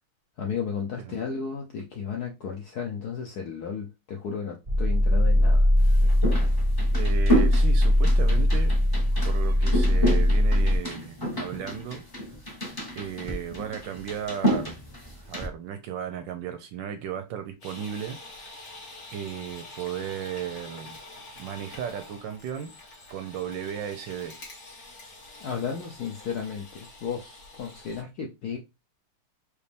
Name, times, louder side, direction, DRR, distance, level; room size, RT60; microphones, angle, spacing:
voice 1, 0.4-5.7 25.4-28.6, left 6 dB, 70° left, 0.9 m, -34 dB
sound 1, 4.7-10.8, left 1 dB, 30° right, 0.6 m, -21 dB
sound 2, 5.8-15.5, equal, 20° left, 0.6 m, -30 dB
voice 2, 6.9-8.7 9.2-12.0 12.9-14.8 15.2-18.8 19.1-21.0 21.4-22.7 23.1-24.3, right 9 dB, 75° right, 1.2 m, -35 dB
sound 3, 17.6-28.0, left 2 dB, 45° left, 1.9 m, -46 dB
5.0 x 2.5 x 3.4 m
omnidirectional pair, 2.4 m